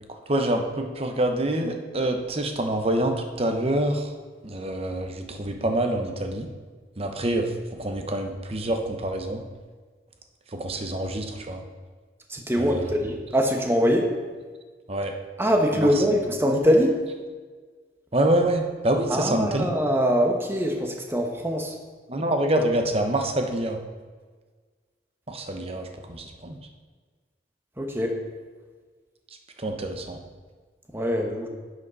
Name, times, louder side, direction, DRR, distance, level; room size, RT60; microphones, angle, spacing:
voice 1, 0.1-4.1 4.4-6.5 7.0-9.4 10.5-11.6 12.6-13.0 14.9-15.1 15.8-16.2 18.1-19.7 22.1-23.8 25.3-26.6 29.6-30.2, right 1 dB, 35° right, 4 dB, 1.0 m, -26 dB
voice 2, 12.3-14.1 15.4-17.0 19.1-21.8 27.8-28.2 30.9-31.5, equal, 15° right, 2 dB, 1.1 m, -23 dB
10.5 x 8.1 x 4.1 m, 1.5 s
head